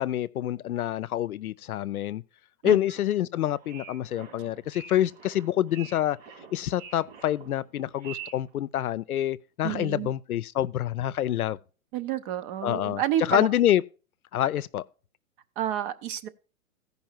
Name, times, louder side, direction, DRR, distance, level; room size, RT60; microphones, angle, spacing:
voice 1, 0.0-2.2 2.6-6.2 6.5-11.6 12.6-13.0 13.3-13.8 14.3-14.9, left 12 dB, 85° left, 0.6 m, -27 dB
sound 1, 3.5-8.5, right 8 dB, 60° right, 2.9 m, -46 dB
voice 2, 9.6-10.1 11.9-13.5 15.6-16.3, right 11 dB, 40° right, 0.8 m, -29 dB
14.5 x 5.5 x 4.5 m
hypercardioid pair, 125°, 42 cm